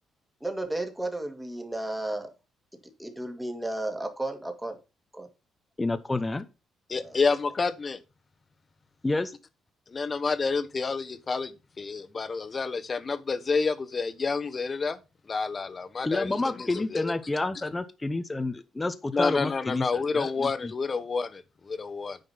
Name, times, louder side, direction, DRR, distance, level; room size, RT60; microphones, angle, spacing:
voice 1, 0.4-2.3 3.0-4.8 5.1-5.3 6.9-7.2, right 2 dB, 10° right, 2.1 m, -33 dB
voice 2, 5.8-6.5 9.0-9.3 16.0-20.7, left 2 dB, 20° left, 0.8 m, -29 dB
voice 3, 6.9-8.0 9.9-15.0 15.3-17.1 19.1-22.2, left 4 dB, 35° left, 1.2 m, -29 dB
9.4 x 5.3 x 5.6 m
cardioid pair, 90°, 0 cm